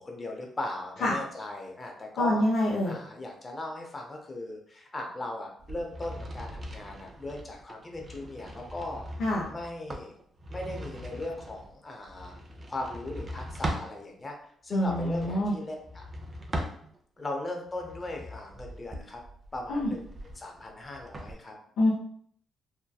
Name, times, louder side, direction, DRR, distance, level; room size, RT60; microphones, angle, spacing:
voice 1, 0.0-10.1 10.5-12.3 12.7-14.4 14.6-16.0 17.2-19.2 19.5-20.0 20.3-21.5, left 2 dB, 25° left, 1 dB, 0.6 m, -38 dB
voice 2, 2.2-3.0 9.2-9.5 14.7-15.5 19.7-19.9 21.8-21.9, left 1 dB, 75° left, -4 dB, 0.4 m, -26 dB
sound 1, 5.6-14.0 14.8-17.2 17.7-21.3, right 1 dB, 35° right, 0.4 m, -40 dB
2.7 x 2.1 x 2.2 m, 0.62 s
cardioid pair, 90°, 0 cm